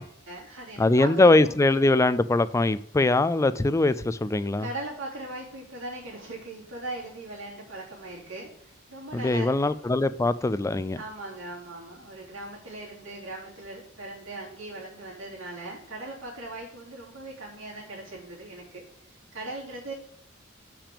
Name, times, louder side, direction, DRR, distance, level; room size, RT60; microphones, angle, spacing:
voice 1, 0.0-1.4 4.6-9.5 11.0-18.8 19.3-19.9, right 2 dB, 70° right, 3.5 m, -39 dB
voice 2, 0.8-4.7 9.1-11.0, left 2 dB, 15° left, 0.3 m, -22 dB
6.0 x 5.1 x 6.7 m
head